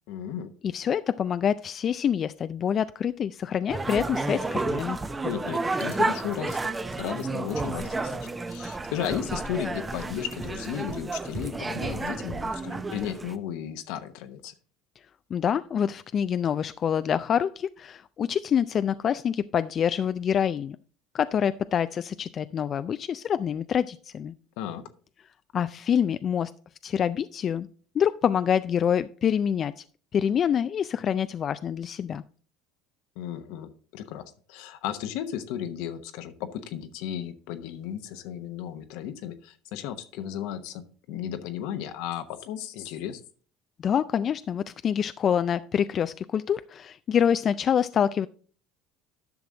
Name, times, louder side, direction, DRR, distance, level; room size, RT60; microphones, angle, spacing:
voice 1, 0.1-0.5 5.2-6.7 7.0-8.2 8.5-14.5 24.6-24.8 33.2-43.2, left 10 dB, 75° left, 10 dB, 1.0 m, -34 dB
voice 2, 0.6-5.0 15.3-20.8 21.1-24.3 25.5-26.5 26.8-27.7 27.9-29.8 30.1-32.2 43.8-48.3, left 8 dB, 40° left, 12 dB, 0.3 m, -26 dB
sound 1, 3.7-13.3, right 3 dB, 20° right, 0.7 m, -31 dB
10.5 x 6.1 x 3.8 m, 0.43 s
supercardioid pair, 95°, 0 cm